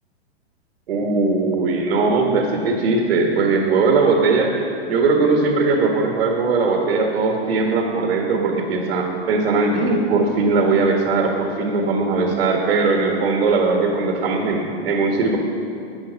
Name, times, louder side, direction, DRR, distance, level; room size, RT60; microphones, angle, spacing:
voice 1, 0.9-4.5 4.9-15.4, right 3 dB, 75° right, 1 dB, 1.8 m, -19 dB
12.0 x 8.4 x 6.4 m, 2.5 s
hypercardioid pair, 120°, 32 cm